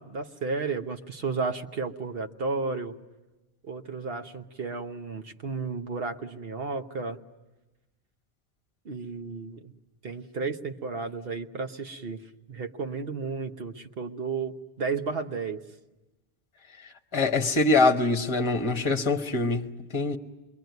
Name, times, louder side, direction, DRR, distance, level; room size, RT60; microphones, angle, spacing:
voice 1, 0.0-2.9 3.6-7.2 8.8-9.7 10.0-12.2 12.5-15.6, right 4 dB, 60° right, 1.3 m, -33 dB
voice 2, 17.1-20.2, left 3 dB, 25° left, 1.1 m, -24 dB
26.5 x 22.5 x 9.3 m
omnidirectional pair, 1.1 m